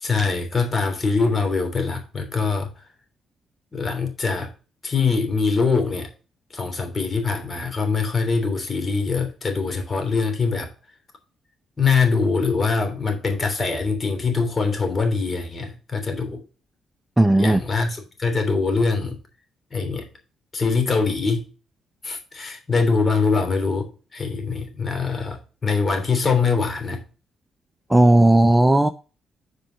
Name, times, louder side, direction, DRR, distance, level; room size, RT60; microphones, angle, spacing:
voice 1, 0.0-2.7 3.7-4.5 4.8-6.1 6.5-10.7 11.8-16.4 17.3-19.2 19.7-20.1 20.5-21.5 22.0-27.0, left 4 dB, 35° left, 3.1 m, -23 dB
voice 2, 17.2-17.6 27.9-28.9, right 1 dB, 15° right, 0.7 m, -15 dB
7.6 x 5.0 x 6.3 m
hypercardioid pair, 45°, 0 cm